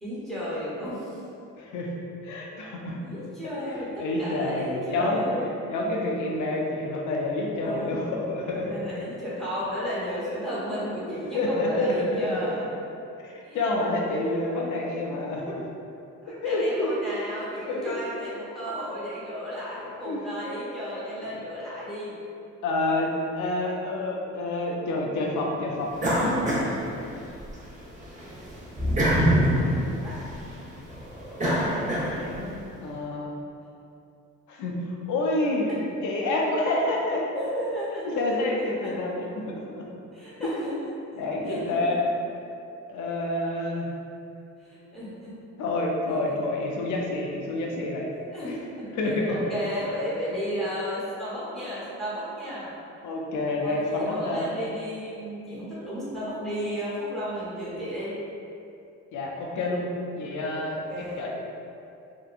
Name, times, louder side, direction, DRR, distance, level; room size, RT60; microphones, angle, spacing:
voice 1, 0.0-1.2 3.0-5.6 7.6-8.2 8.5-12.7 13.4-13.6 16.2-22.2 28.2-28.3 29.7-30.5 35.7-35.8 37.3-38.2 38.6-39.0 40.1-40.9 41.5-41.8 44.6-45.4 48.2-48.9 49.3-52.8 53.6-58.1 60.9-61.2, equal, ahead, -10 dB, 1.0 m, -34 dB
voice 2, 1.6-1.9 2.2-3.0 3.6-5.2 5.7-8.7 11.3-12.5 13.2-15.6 16.4-16.9 17.7-18.0 20.0-20.2 21.3-21.4 22.6-25.9 31.7-31.8 32.1-33.4 34.5-35.7 36.0-37.2 38.0-39.9 40.4-40.7 41.1-42.1 42.9-43.9 45.6-48.1 48.4-48.6 48.9-49.4 53.0-54.5 59.1-59.9 60.2-61.4, left 2 dB, 75° left, -1 dB, 0.5 m, -28 dB
sound 1, 26.0-27.5 27.9-32.5, equal, 25° right, 0.7 m, -25 dB
2.8 x 2.2 x 2.4 m, 2.6 s
cardioid pair, 90°, 30 cm